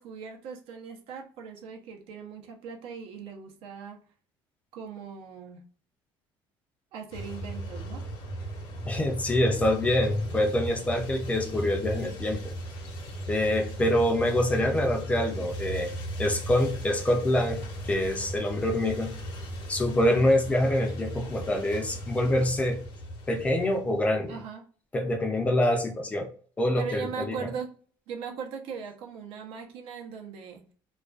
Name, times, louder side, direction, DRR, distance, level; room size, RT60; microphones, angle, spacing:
voice 1, 0.0-4.0 4.7-5.6 6.9-8.0 24.3-24.6 26.8-27.7 28.1-30.6, right 6 dB, 70° right, 2 dB, 0.6 m, -39 dB
sound 1, 7.1-24.2, right 1 dB, 65° left, 0.7 m, -37 dB
voice 2, 8.9-12.5 13.3-15.9 16.2-19.2 19.7-22.8 23.3-24.4 24.9-26.3 26.6-27.4, left 1 dB, 15° left, 3 dB, 0.4 m, -26 dB
2.3 x 2.2 x 2.3 m, 0.43 s
cardioid pair, 160°, 10 cm